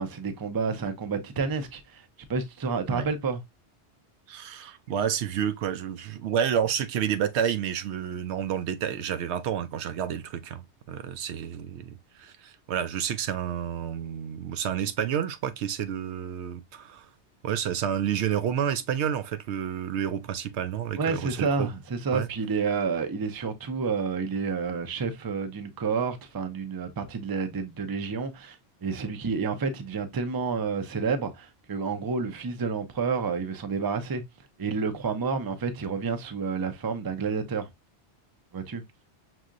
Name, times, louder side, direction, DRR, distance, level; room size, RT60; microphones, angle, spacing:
voice 1, 0.0-2.0 2.3-3.4 21.0-34.2 34.6-37.7 38.5-38.8, right 5 dB, 30° right, 0.5 m, -29 dB
voice 2, 4.3-10.6 10.9-17.1 17.4-21.7 22.1-22.3, right 9 dB, 80° right, 0.9 m, -30 dB
6.0 x 2.8 x 2.4 m
omnidirectional pair, 1.2 m